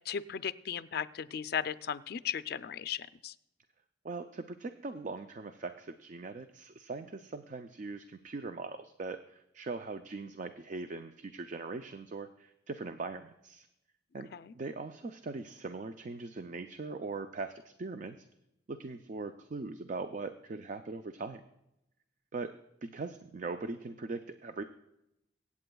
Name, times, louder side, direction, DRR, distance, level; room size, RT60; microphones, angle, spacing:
voice 1, 0.1-3.3 14.3-14.5, left 8 dB, 60° left, 13 dB, 0.4 m, -36 dB
voice 2, 4.0-13.7 14.1-14.3 14.5-18.2 18.7-21.4 22.3-22.5 22.8-24.6, right 3 dB, 45° right, 8 dB, 0.4 m, -40 dB
24.5 x 8.5 x 2.3 m, 0.86 s
head